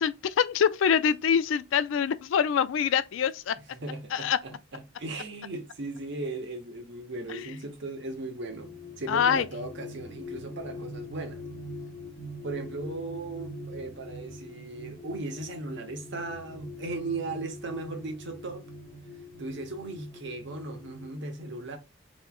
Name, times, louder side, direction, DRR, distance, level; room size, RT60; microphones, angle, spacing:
voice 1, 0.0-3.5 4.1-4.4 7.3-7.5 9.1-9.5, left 7 dB, 70° left, 0.3 m, -25 dB
voice 2, 3.7-11.5 12.4-18.6 19.4-21.8, right 2 dB, 65° right, 1.0 m, -37 dB
sound 1, 8.3-21.1, left 1 dB, 40° left, 1.3 m, -43 dB
3.2 x 3.0 x 2.2 m
head